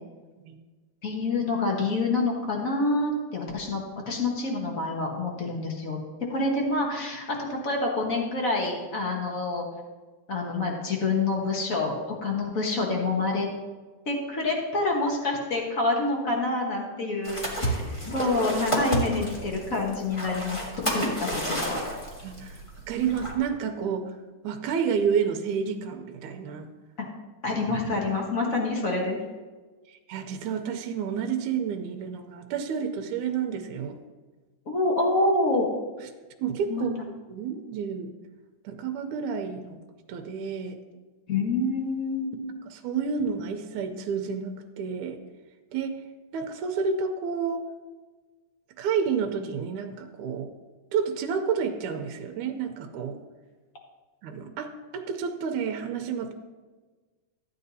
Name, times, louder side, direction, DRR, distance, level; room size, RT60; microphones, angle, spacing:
voice 1, 1.0-6.0 6.3-9.6 10.3-13.5 14.1-21.8 27.4-29.2 34.7-35.7 36.7-36.8 41.3-42.3, left 2 dB, 55° left, -1 dB, 0.9 m, -27 dB
sound 1, 17.2-23.3, equal, 20° left, 0.8 m, -31 dB
voice 2, 22.2-24.1 24.4-26.7 29.9-34.0 36.4-36.9 37.3-38.1 38.6-39.8 40.1-40.8 42.7-45.2 45.7-46.0 46.3-47.6 48.8-50.5 50.9-53.2 54.2-56.3, right 6 dB, 80° right, 6 dB, 2.1 m, -30 dB
14.0 x 9.4 x 2.7 m, 1.3 s
omnidirectional pair, 3.5 m